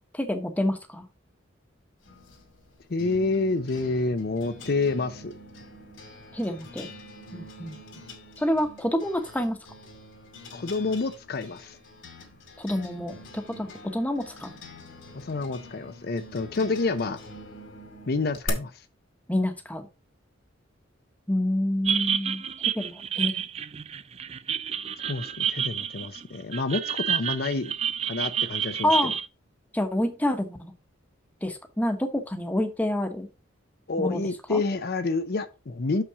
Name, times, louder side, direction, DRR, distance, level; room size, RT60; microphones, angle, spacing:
voice 1, 0.1-1.0 6.3-6.9 7.3-7.8 8.4-9.6 12.6-14.5 19.3-19.8 21.3-23.3 28.8-29.1 29.7-30.7 31.4-33.3 34.0-34.2 34.5-34.6, left 1 dB, 10° left, 1.1 m, -28 dB
sound 1, 2.0-18.5, left 2 dB, 70° left, 2.3 m, -45 dB
voice 2, 2.9-5.3 10.5-11.8 15.1-17.2 18.1-18.8 25.1-27.7 28.1-28.9 33.9-36.0, left 3 dB, 50° left, 0.6 m, -28 dB
sound 2, 21.8-29.2, right 8 dB, 30° right, 0.4 m, -29 dB
6.9 x 5.7 x 4.8 m
head